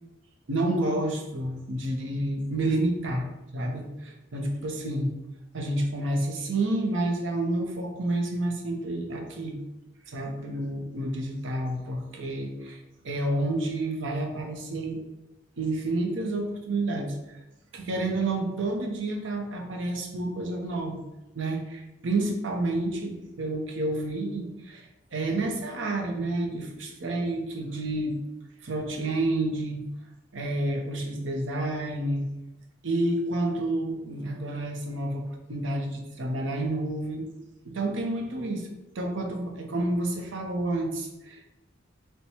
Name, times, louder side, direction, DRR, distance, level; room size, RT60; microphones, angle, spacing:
voice 1, 0.5-5.1 5.5-9.6 10.1-12.8 13.0-15.0 15.6-17.4 17.7-21.0 21.3-28.2 28.6-29.8 30.3-32.3 32.8-37.3 37.6-38.7 38.9-41.6, right 2 dB, 80° right, 2 dB, 0.7 m, -29 dB
4.3 x 2.2 x 4.3 m, 0.96 s
head